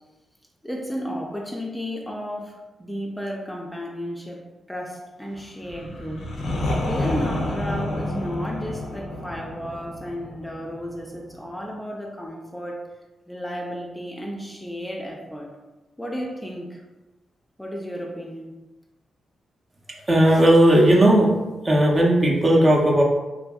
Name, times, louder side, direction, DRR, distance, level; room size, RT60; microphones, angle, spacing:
voice 1, 0.6-4.4 4.7-6.3 6.8-12.8 13.3-15.5 16.0-16.8 17.6-18.5, equal, 10° left, -1 dB, 0.5 m, -33 dB
sound 1, 5.6-11.4, left 1 dB, 75° left, 0.6 m, -29 dB
voice 2, 20.1-21.4 21.6-23.0, right 1 dB, 40° right, -2 dB, 0.6 m, -16 dB
2.7 x 2.5 x 2.3 m, 1.1 s
cardioid pair, 60°, 0 cm